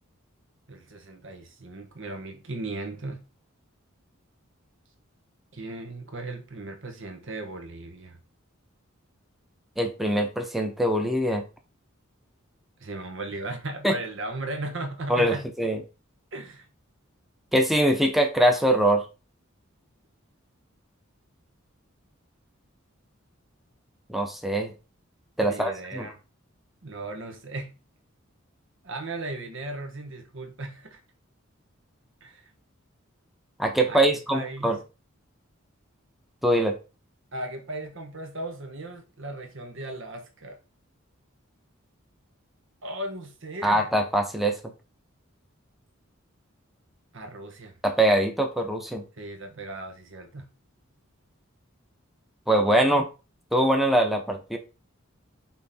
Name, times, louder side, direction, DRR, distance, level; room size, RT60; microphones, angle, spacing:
voice 1, 0.7-3.2 5.5-8.2 12.8-15.4 16.3-16.7 25.4-26.2 26.8-27.7 28.8-31.0 32.2-32.5 33.9-34.0 34.3-34.7 37.3-40.6 42.8-43.9 47.1-47.8 49.1-50.5, right 2 dB, 65° right, 1.4 m, -36 dB
voice 2, 9.8-11.4 13.8-14.0 15.1-15.8 17.5-19.0 24.1-24.7 25.4-26.1 33.6-34.8 36.4-36.7 43.6-44.6 47.8-49.0 52.5-53.1 53.5-54.6, right 1 dB, ahead, 0.9 m, -23 dB
5.8 x 3.8 x 4.3 m
head